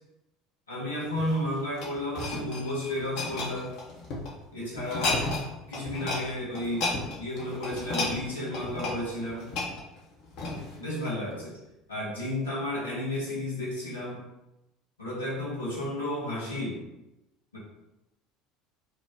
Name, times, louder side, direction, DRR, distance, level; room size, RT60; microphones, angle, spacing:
voice 1, 0.7-3.7 4.5-5.2 5.7-6.9 7.2-9.5 10.8-11.6 11.9-14.2 15.0-16.8 17.5-17.6, left 1 dB, 80° left, -7 dB, 0.9 m, -32 dB
sound 1, 1.1-4.3 4.8-5.5 5.7-6.2 6.5-10.8 11.4-11.5, left 2 dB, 55° left, 0.7 m, -33 dB
2.9 x 2.1 x 3.4 m, 0.95 s
figure-of-eight pair, 65°, 0 cm